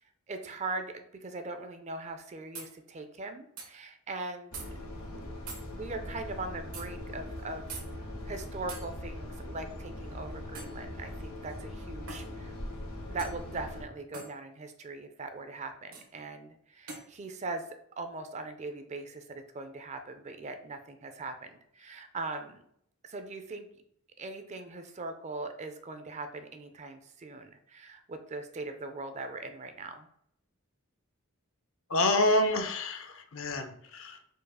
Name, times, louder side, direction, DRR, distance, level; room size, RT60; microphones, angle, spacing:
voice 1, 0.3-4.6 5.7-12.5 13.1-17.7 18.0-22.6 23.0-23.7 24.2-30.1, right 3 dB, 30° right, 8 dB, 0.4 m, -40 dB
sound 1, 2.5-2.7 3.6-3.7 4.5-4.7 5.5-5.7 6.7-6.9 7.7-7.9 8.7-8.9 10.5-10.8 12.1-12.3 13.2-13.4 14.1-14.3 15.9-16.1 16.9-17.1, right 4 dB, 90° right, 1.2 m, -42 dB
sound 2, 4.5-13.8, left 1 dB, 80° left, 1.4 m, -41 dB
voice 2, 31.9-34.3, left 2 dB, 60° left, 7 dB, 0.6 m, -28 dB
4.6 x 2.4 x 4.7 m, 0.69 s
head